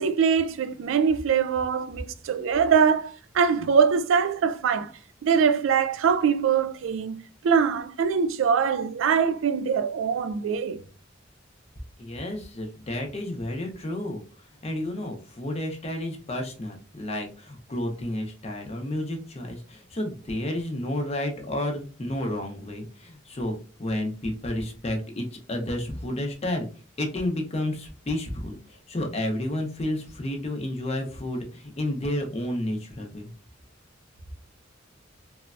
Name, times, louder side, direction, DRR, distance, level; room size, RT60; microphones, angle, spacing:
voice 1, 0.0-4.9 5.2-10.8, right 6 dB, 80° right, 0.3 m, -23 dB
voice 2, 12.0-14.2 14.6-23.5 23.8-26.7 27.0-33.3, left 1 dB, 30° left, 0.6 m, -31 dB
3.1 x 2.1 x 2.3 m
head